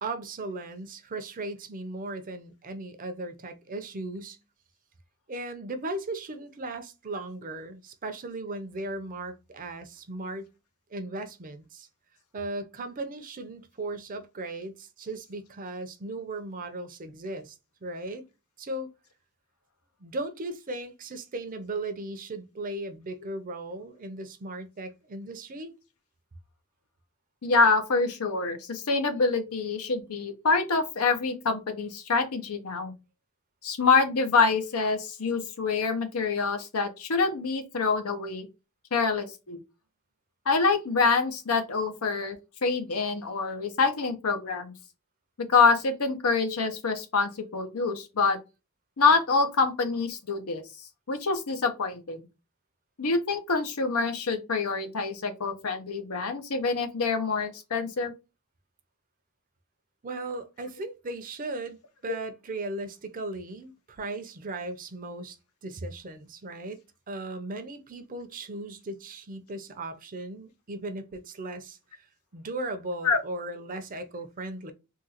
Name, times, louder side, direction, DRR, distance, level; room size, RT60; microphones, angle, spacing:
voice 1, 0.0-4.4 5.3-10.5 10.9-11.9 12.3-17.6 17.8-18.2 18.6-18.9 20.0-25.7 60.0-65.4 65.6-66.8 67.1-72.1 72.3-74.7, right 2 dB, 40° right, 0.6 m, -37 dB
voice 2, 27.4-32.9 33.6-38.5 38.9-39.6 40.5-44.7 45.5-48.4 49.0-50.6 51.1-52.3 53.0-58.1 62.1-62.2 73.0-73.2, left 4 dB, 85° left, 0.8 m, -26 dB
3.7 x 2.3 x 2.8 m
head